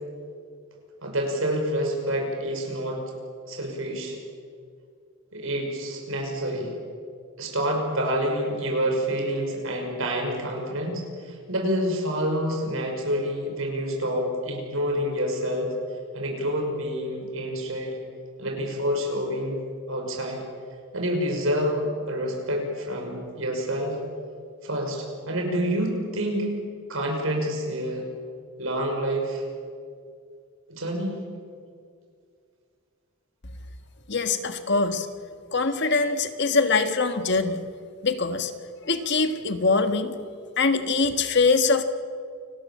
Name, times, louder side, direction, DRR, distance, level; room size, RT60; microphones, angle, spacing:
voice 1, 1.0-3.0 3.5-4.2 5.3-6.7 7.4-15.7 16.1-18.0 18.4-19.6 19.9-20.4 20.9-24.0 24.6-26.5 26.9-28.1 28.6-29.4 30.7-31.2, equal, 75° right, 1 dB, 6.2 m, -28 dB
voice 2, 34.1-35.1 35.5-37.6 38.0-38.5 38.9-40.1 40.6-41.8, left 4 dB, 55° left, 8 dB, 1.6 m, -23 dB
29.0 x 19.5 x 7.6 m, 2.2 s
head